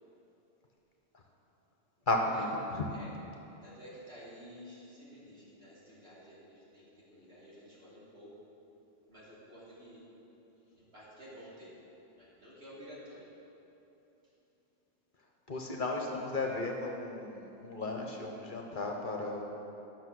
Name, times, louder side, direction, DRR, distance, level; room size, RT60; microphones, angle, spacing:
voice 1, 2.1-2.8 15.5-19.4, left 2 dB, 50° left, 1 dB, 1.1 m, -34 dB
voice 2, 2.9-3.2 3.6-8.4 9.1-10.0 10.7-11.8 12.2-13.3, equal, 65° right, -9 dB, 3.1 m, -52 dB
10.5 x 6.6 x 6.3 m, 3.0 s
omnidirectional pair, 1.1 m